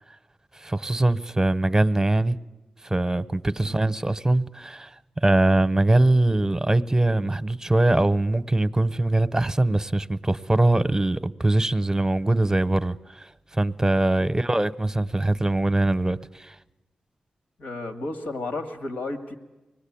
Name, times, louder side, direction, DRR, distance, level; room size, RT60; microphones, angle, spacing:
voice 1, 0.6-2.4 2.8-16.6, right 2 dB, 20° right, 0.9 m, -22 dB
voice 2, 17.6-19.3, left 2 dB, 80° left, 1.9 m, -33 dB
24.5 x 19.0 x 8.7 m
cardioid pair, 45°, 3 cm